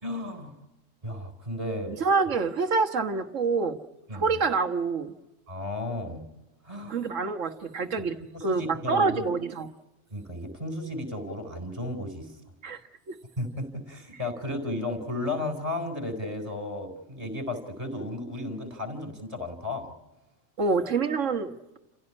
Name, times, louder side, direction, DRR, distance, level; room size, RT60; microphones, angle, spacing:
voice 1, 0.0-0.5 1.0-1.9 4.1-4.4 5.5-6.3 6.6-7.0 8.3-9.2 10.1-12.3 13.4-19.9, left 1 dB, 25° right, 6 dB, 4.3 m, -34 dB
voice 2, 1.9-3.8 4.1-5.1 6.9-9.7 12.6-12.8 13.1-13.2 20.6-21.8, right 4 dB, 70° right, 7 dB, 1.7 m, -27 dB
29.0 x 16.0 x 9.8 m, 1.0 s
omnidirectional pair, 1.3 m